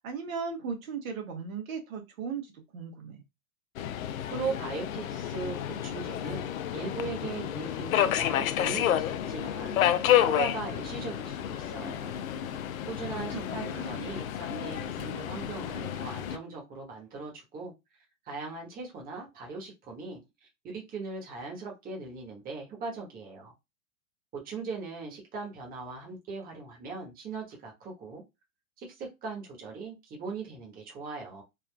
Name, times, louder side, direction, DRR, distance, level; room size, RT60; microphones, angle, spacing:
voice 1, 0.0-3.2 13.1-14.1, right 6 dB, 75° right, 1.3 m, -37 dB
Subway metro underground, 3.8-16.4, left 11 dB, 80° left, 0.5 m, -30 dB
voice 2, 4.3-9.8 10.3-12.2 12.9-17.7 18.2-23.5 24.3-28.2 28.8-31.4, right 4 dB, 20° right, 1.2 m, -39 dB
3.5 x 2.4 x 2.3 m
hypercardioid pair, 125°, 41 cm